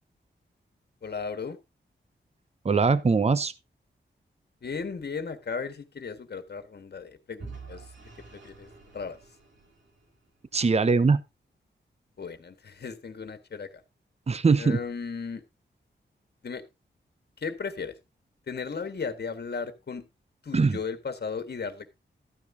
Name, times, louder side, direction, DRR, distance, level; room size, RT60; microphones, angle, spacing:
voice 1, 1.0-1.6 4.6-8.7 8.9-9.2 12.2-13.7 14.6-15.4 16.4-16.6 17.4-18.0 18.5-20.1 20.4-21.9, left 5 dB, 60° left, 1.5 m, -36 dB
voice 2, 2.6-3.5 10.5-11.2 14.3-14.8 20.5-20.8, right 4 dB, 35° right, 0.8 m, -21 dB
Vehicle / Engine, 7.4-10.4, right 4 dB, 80° right, 4.6 m, -47 dB
13.5 x 9.6 x 2.7 m
wide cardioid pair, 75°, 19 cm